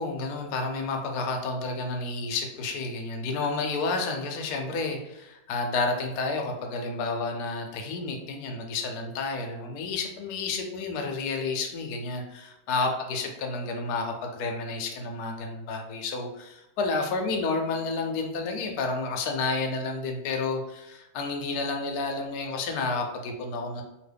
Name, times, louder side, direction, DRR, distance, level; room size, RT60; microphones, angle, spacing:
voice 1, 0.0-23.8, left 3 dB, 70° left, 3 dB, 1.0 m, -30 dB
2.9 x 2.6 x 3.3 m, 0.92 s
omnidirectional pair, 1.9 m